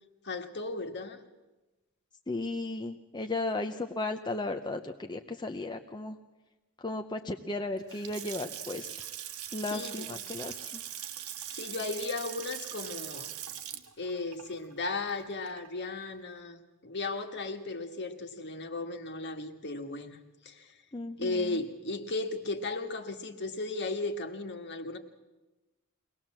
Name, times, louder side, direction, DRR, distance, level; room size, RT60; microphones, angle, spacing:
voice 1, 0.2-1.2 9.7-10.1 11.5-13.3 14.0-20.8 21.2-25.0, left 3 dB, 50° left, 6 dB, 1.7 m, -36 dB
voice 2, 2.3-6.2 6.8-9.1 9.5-10.8 20.9-21.6, left 2 dB, 20° left, 5 dB, 0.7 m, -35 dB
Water tap faucet / Sink (filling or washing) / Splash splatter, 7.8-15.9, right 10 dB, 85° right, 1.4 m, -41 dB
23.0 x 18.5 x 7.5 m, 1.1 s
head